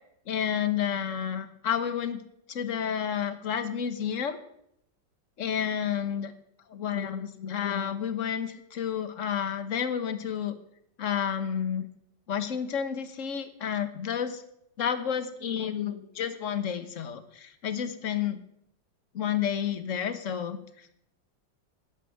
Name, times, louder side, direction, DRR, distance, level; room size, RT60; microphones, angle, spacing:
voice 1, 0.3-2.2 2.5-4.4 5.4-6.3 6.7-10.6 11.0-11.9 12.3-14.4 14.8-18.4 19.1-20.9, left 8 dB, 45° left, 10 dB, 1.4 m, -30 dB
11.5 x 10.5 x 9.5 m, 0.77 s
omnidirectional pair, 2.0 m